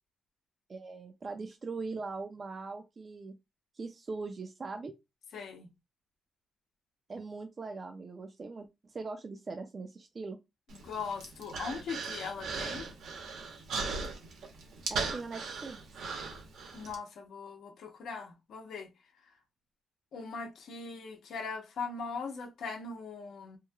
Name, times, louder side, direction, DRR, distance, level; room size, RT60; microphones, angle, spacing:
voice 1, 0.7-3.4 3.7-4.9 7.1-10.4 14.9-15.8, right 4 dB, 30° right, 0.4 m, -41 dB
voice 2, 5.3-5.7 10.8-12.8 16.7-18.9 20.1-23.6, left 5 dB, 65° left, 0.8 m, -40 dB
Human voice, 10.7-17.0, right 4 dB, 75° right, 0.9 m, -38 dB
3.0 x 2.7 x 2.3 m
cardioid pair, 135°, 0 cm